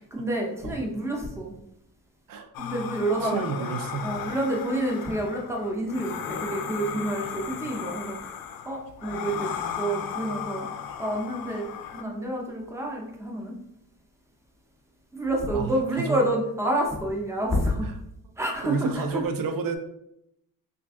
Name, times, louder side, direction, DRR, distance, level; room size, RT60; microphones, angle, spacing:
voice 1, 0.1-1.6 2.6-3.6 4.0-8.3 8.7-9.5 9.8-10.7 11.0-13.6 15.1-17.9 18.4-19.2, right 1 dB, 10° right, -1 dB, 0.5 m, -28 dB
sound 1, 2.5-12.0, left 8 dB, 70° left, 0.5 m, -36 dB
voice 2, 3.2-4.1 7.2-7.4 15.5-16.2 17.5-17.9 18.6-19.8, right 5 dB, 70° right, 7 dB, 0.5 m, -31 dB
3.2 x 2.5 x 3.4 m, 0.78 s
wide cardioid pair, 175°, 36 cm